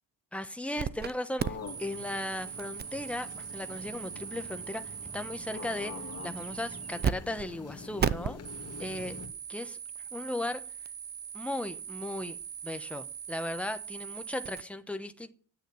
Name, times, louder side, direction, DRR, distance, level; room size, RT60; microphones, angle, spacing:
voice 1, 0.3-8.4 8.8-9.2 9.5-9.8 10.1-10.6 11.3-12.4 12.6-15.3, left 1 dB, 5° left, 1.0 m, -37 dB
sound 1, 0.8-1.1 1.4-7.1 7.4-7.5 8.0-14.6, right 7 dB, 25° right, 0.5 m, -37 dB
sound 2, 1.4-9.3, left 4 dB, 40° left, 2.2 m, -45 dB
9.5 x 7.4 x 8.5 m
cardioid pair, 125°, 39 cm